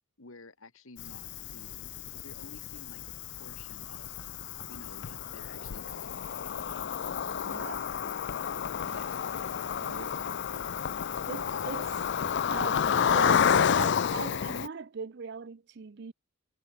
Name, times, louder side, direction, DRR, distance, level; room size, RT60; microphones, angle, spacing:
voice 1, 0.2-6.6 8.9-9.1 9.4-9.5 9.8-10.1, left 2 dB, 70° left, 1.9 m, -52 dB
Cricket, 1.0-14.7, left 7 dB, 55° left, 0.4 m, -30 dB
voice 2, 7.4-7.9 8.8-9.1 9.4-9.5 9.8-10.1 10.5-10.6 11.3-12.0 12.5-16.1, right 5 dB, 50° right, 0.5 m, -40 dB
head